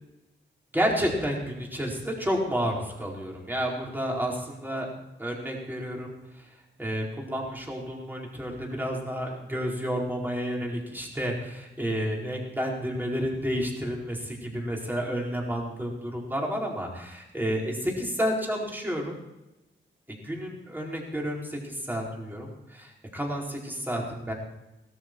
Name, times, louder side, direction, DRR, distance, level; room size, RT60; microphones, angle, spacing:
voice 1, 0.7-4.9 5.2-6.1 6.8-19.2 20.1-24.3, equal, 10° right, -2 dB, 4.7 m, -30 dB
17.5 x 14.0 x 4.7 m, 0.95 s
wide cardioid pair, 95°, 20 cm